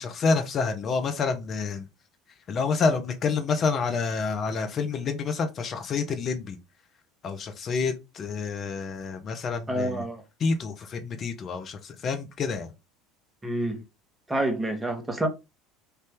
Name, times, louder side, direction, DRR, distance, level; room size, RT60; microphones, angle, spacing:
voice 1, 0.0-1.9 2.5-6.6 7.2-10.0 10.4-12.7, left 4 dB, 40° left, 0.9 m, -28 dB
voice 2, 9.7-10.2 13.4-13.8 14.3-15.3, right 1 dB, 15° right, 1.3 m, -28 dB
3.5 x 2.7 x 3.5 m
hypercardioid pair, 70°, 0 cm